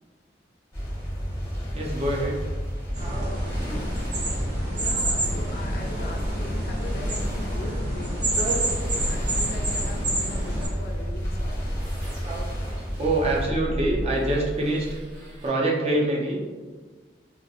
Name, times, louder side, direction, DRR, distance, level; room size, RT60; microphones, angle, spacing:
sound 1, 0.7-13.5, equal, 15° left, 0.6 m, -32 dB
voice 1, 1.7-2.4 2.9-3.8 8.4-8.7 12.2-14.9 15.4-16.4, right 1 dB, 35° right, -3 dB, 0.5 m, -26 dB
sound 2, 2.9-10.7, right 1 dB, 60° right, 0.9 m, -28 dB
voice 2, 4.7-8.4 9.1-11.6, left 2 dB, 55° left, 2 dB, 0.3 m, -40 dB
sound 3, 8.9-15.5, equal, 80° right, 1.2 m, -34 dB
2.3 x 2.1 x 2.7 m, 1.4 s
head